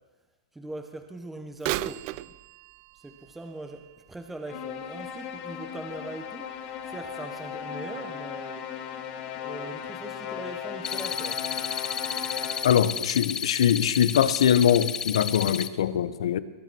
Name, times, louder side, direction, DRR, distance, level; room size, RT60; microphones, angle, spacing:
voice 1, 0.5-2.4 2.9-6.6 6.8-8.7 9.4-11.5, right 2 dB, 5° right, 6 dB, 0.9 m, -41 dB
Bird vocalization bird call bird song / Telephone, 1.6-5.4 6.0-6.1 6.9-7.0 7.6-7.7, right 17 dB, 45° right, 0.4 m, -37 dB
sound 1, 4.5-13.0, left 8 dB, 40° left, 1.6 m, -37 dB
sound 2, 10.8-15.7, left 8 dB, 20° left, 0.6 m, -32 dB
voice 2, 12.6-16.4, left 9 dB, 80° left, 15 dB, 0.8 m, -22 dB
20.5 x 9.1 x 6.2 m, 1.2 s
hypercardioid pair, 135°, 3 cm